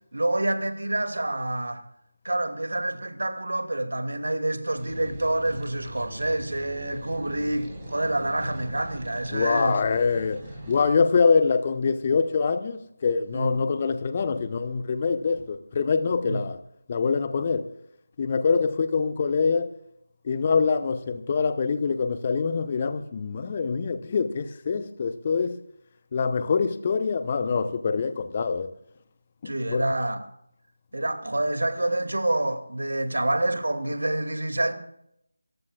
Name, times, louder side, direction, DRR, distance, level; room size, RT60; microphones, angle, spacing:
voice 1, 0.1-1.8 2.2-9.8 13.3-13.6 16.2-16.4 29.4-30.2 30.9-34.7, right 1 dB, 60° right, 2.4 m, -27 dB
sound 1, 4.8-10.9, right 1 dB, 15° right, 5.9 m, -41 dB
voice 2, 9.3-16.6 16.9-17.7 18.2-19.7 20.2-25.6 26.1-28.7 29.4-29.8, left 5 dB, 25° left, 0.8 m, -25 dB
27.5 x 15.0 x 2.4 m
figure-of-eight pair, 160°, 0 cm